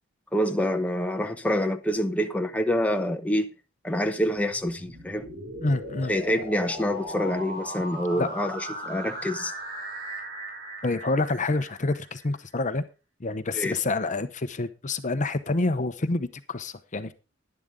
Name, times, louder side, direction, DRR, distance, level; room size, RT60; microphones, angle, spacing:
voice 1, 0.3-3.5 3.8-5.3 6.1-9.5 13.5-13.8, equal, 5° left, 0.9 m, -26 dB
sound 1, 4.4-12.3, right 1 dB, 50° right, 5.7 m, -38 dB
voice 2, 5.6-6.1 8.2-8.3 10.8-12.8 13.2-17.1, left 2 dB, 40° left, 0.8 m, -27 dB
11.5 x 11.0 x 3.7 m
head